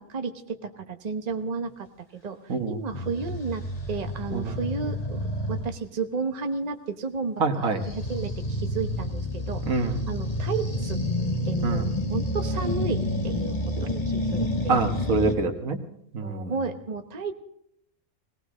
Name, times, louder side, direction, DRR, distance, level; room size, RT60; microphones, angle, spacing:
voice 1, 0.0-1.9 2.1-5.2 5.5-11.0 11.4-14.8 16.2-17.3, right 4 dB, 35° right, 6 dB, 1.0 m, -33 dB
sound 1, 2.9-5.7 7.8-15.3, left 1 dB, 30° left, 2.2 m, -29 dB
voice 2, 7.4-7.8 9.7-10.0 11.6-11.9 13.8-13.9 14.7-15.8 16.1-16.5, right 4 dB, 85° right, 5 dB, 1.8 m, -26 dB
19.0 x 18.5 x 3.7 m, 0.74 s
omnidirectional pair, 1.4 m